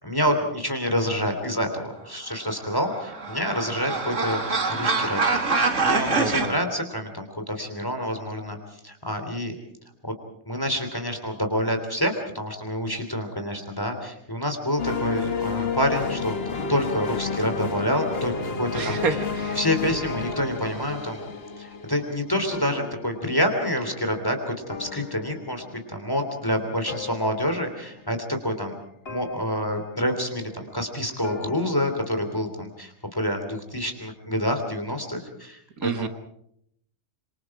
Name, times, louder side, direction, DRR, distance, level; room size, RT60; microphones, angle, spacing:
voice 1, 0.0-4.4 4.7-5.2 5.5-8.6 8.8-9.5 10.0-10.1 10.4-19.2 19.5-21.2 21.6-28.7 29.1-36.1, equal, 15° left, 5 dB, 3.2 m, -27 dB
sound 1, 2.6-6.5, right 3 dB, 55° right, 2.4 m, -25 dB
voice 2, 6.2-6.5 18.7-19.6 35.8-36.1, right 5 dB, 70° right, 9 dB, 1.9 m, -28 dB
sound 2, 14.8-24.2 24.5-25.9 26.9-27.9 29.1-29.8 31.2-32.2, left 5 dB, 40° left, 1.7 m, -32 dB
26.5 x 25.5 x 4.9 m, 0.71 s
omnidirectional pair, 1.6 m